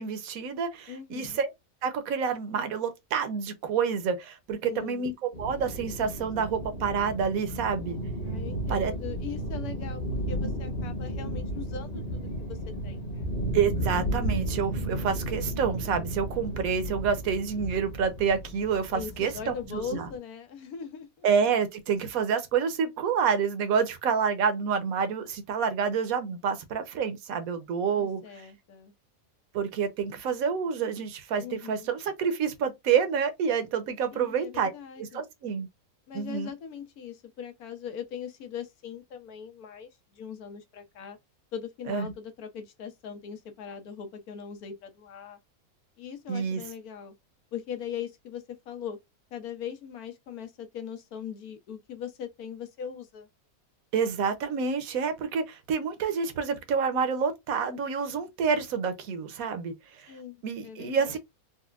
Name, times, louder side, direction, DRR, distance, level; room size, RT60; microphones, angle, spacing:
voice 1, 0.0-1.5 1.8-8.0 8.7-8.9 13.5-20.1 21.2-28.5 29.5-34.7 35.0-35.7 36.1-36.5 41.9-42.1 46.3-46.6 53.9-60.1 60.4-61.2, right 6 dB, 75° right, 1.2 m, -28 dB
voice 2, 0.9-1.4 4.6-5.1 8.2-13.3 18.9-21.3 28.0-28.9 31.4-31.9 34.1-35.2 36.1-41.2 41.5-45.4 46.0-47.1 47.5-49.0 49.3-53.3 60.1-60.4 60.6-61.2, left 7 dB, 85° left, 1.3 m, -40 dB
sound 1, 5.3-20.2, right 1 dB, 35° left, 1.3 m, -33 dB
4.1 x 2.2 x 2.3 m
omnidirectional pair, 1.5 m